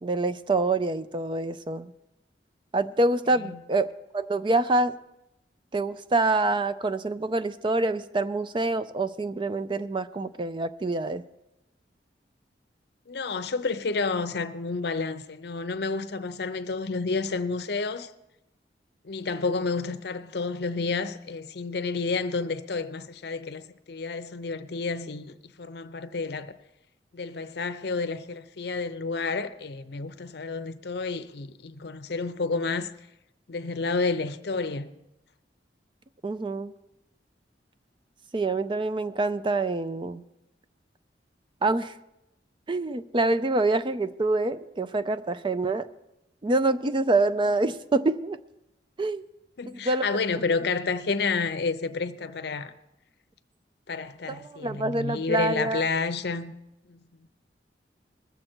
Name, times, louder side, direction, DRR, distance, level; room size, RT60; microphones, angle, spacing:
voice 1, 0.0-1.9 2.7-4.9 5.7-11.2 36.2-36.7 38.3-40.2 41.6-41.9 42.7-45.9 46.4-48.4 49.0-49.2 49.8-50.0 54.3-55.8, right 2 dB, 30° right, 0.4 m, -26 dB
voice 2, 13.1-18.1 19.0-26.5 27.1-32.9 33.5-34.9 49.6-52.7 53.9-56.5 56.9-57.0, left 4 dB, 65° left, 0.7 m, -30 dB
21.0 x 7.7 x 4.4 m
head